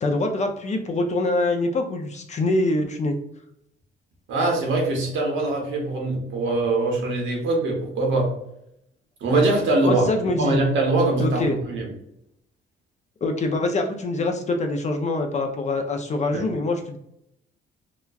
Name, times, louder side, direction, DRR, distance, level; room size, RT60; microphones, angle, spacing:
voice 1, 0.0-3.2 9.9-10.6 11.2-11.6 13.2-17.0, left 2 dB, 35° left, 4 dB, 0.5 m, -24 dB
voice 2, 4.3-8.3 9.2-10.1 10.4-11.8 16.3-16.4, right 2 dB, 75° right, 0 dB, 1.0 m, -22 dB
2.9 x 2.2 x 2.3 m, 0.77 s
cardioid pair, 90°, 20 cm